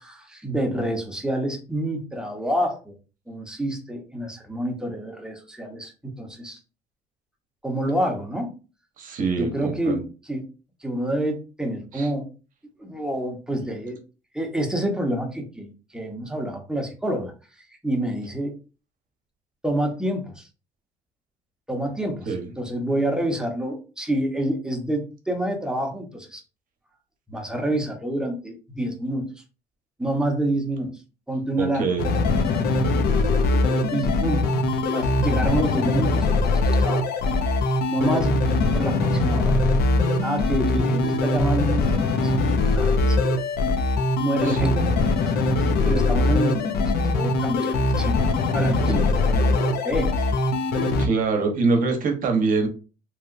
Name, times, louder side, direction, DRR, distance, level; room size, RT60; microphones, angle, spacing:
voice 1, 0.0-2.9 3.3-6.6 7.6-8.5 9.4-10.4 10.8-12.3 12.8-14.0 14.3-17.3 17.8-18.5 19.6-20.5 21.7-26.4 27.3-29.3 30.0-30.9 31.3-31.9 33.9-34.5 34.9-37.0 37.9-38.4 38.7-39.6 40.2-42.3 42.7-43.2 44.2-44.8 45.2-46.7 47.1-48.2 48.5-50.3, right 1 dB, 5° right, 2 dB, 0.8 m, -28 dB
voice 2, 9.0-10.0 11.9-12.1 22.3-22.5 31.6-32.1 44.4-45.0 48.9-49.1 51.0-52.7, right 4 dB, 55° right, 4 dB, 0.8 m, -24 dB
sound 1, 32.0-51.1, left 2 dB, 70° left, 0.6 m, -22 dB
3.0 x 2.8 x 2.5 m, 0.34 s
cardioid pair, 110°, 17 cm